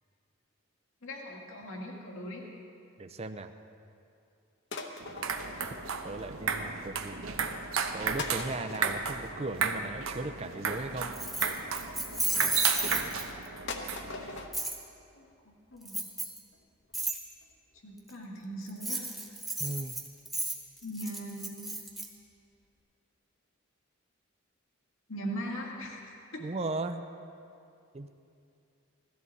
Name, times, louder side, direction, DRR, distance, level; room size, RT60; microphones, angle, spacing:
voice 1, 1.0-2.4 15.1-16.0 17.8-19.1 20.8-21.7 25.1-26.5, equal, 80° left, -1 dB, 2.0 m, -40 dB
voice 2, 3.0-3.5 6.0-7.3 7.9-11.1 19.6-19.9 26.4-27.1 27.9-28.1, right 2 dB, 30° right, 8 dB, 0.5 m, -37 dB
sound 1, 4.7-6.4 6.7-7.2 7.8-7.9 8.2-11.8 12.4-13.0 13.3-13.4 13.7-14.5 14.9-15.0 15.2-15.3 15.7-15.8 16.0-16.1 16.5-16.6 16.9-17.0 17.4-17.5 17.8-17.9, left 3 dB, 60° left, 1.2 m, -43 dB
sound 2, 5.0-14.5, right 5 dB, 85° right, 0.9 m, -34 dB
Keys jangling, 11.1-13.5 14.5-14.8 15.9-16.4 16.9-17.2 18.7-22.1, right 2 dB, ahead, 1.3 m, -33 dB
17.0 x 13.5 x 4.1 m, 2.6 s
head